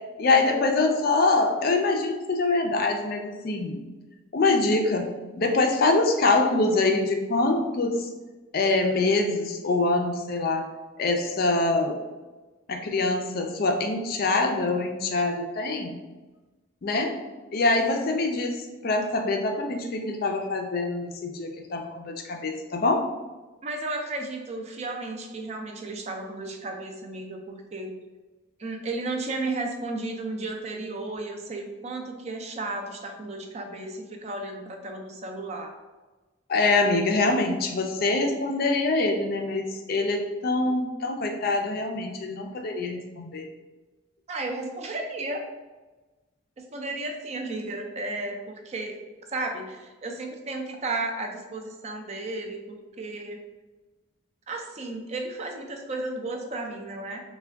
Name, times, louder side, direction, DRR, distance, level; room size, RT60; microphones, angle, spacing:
voice 1, 0.2-3.8 4.3-5.1 5.4-8.1 8.5-10.7 11.0-12.0 12.7-16.0 16.8-17.1 17.5-23.0 36.5-43.5, left 3 dB, 45° left, 3 dB, 0.4 m, -24 dB
voice 2, 23.6-27.9 28.6-35.7 44.3-45.4 46.7-49.0 49.3-53.4 54.5-57.2, right 2 dB, 30° right, 3 dB, 0.3 m, -33 dB
3.4 x 2.2 x 3.3 m, 1.2 s
head